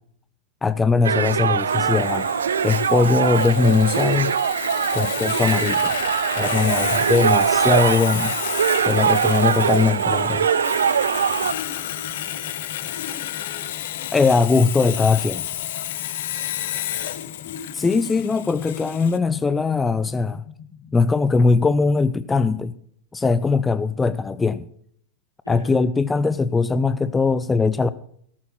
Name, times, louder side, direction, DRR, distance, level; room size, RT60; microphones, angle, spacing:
voice 1, 0.6-2.3 2.6-4.3 4.9-6.0 6.4-8.4 8.8-10.5 14.1-15.5 17.7-20.4 20.9-22.7 23.1-24.7 25.5-27.9, left 4 dB, 15° left, 0.6 m, -20 dB
sound 1, 1.0-11.5, right 7 dB, 70° right, 0.6 m, -22 dB
Sawing, 1.7-19.2, left 12 dB, 55° left, 1.0 m, -31 dB
voice 2, 4.9-5.3 6.6-7.6 10.6-13.2 16.2-17.3 25.4-25.8, left 1 dB, 85° left, 4.3 m, -46 dB
sound 2, 11.4-21.4, left 8 dB, 35° left, 1.6 m, -45 dB
18.0 x 8.8 x 5.9 m
figure-of-eight pair, 90°, 0 cm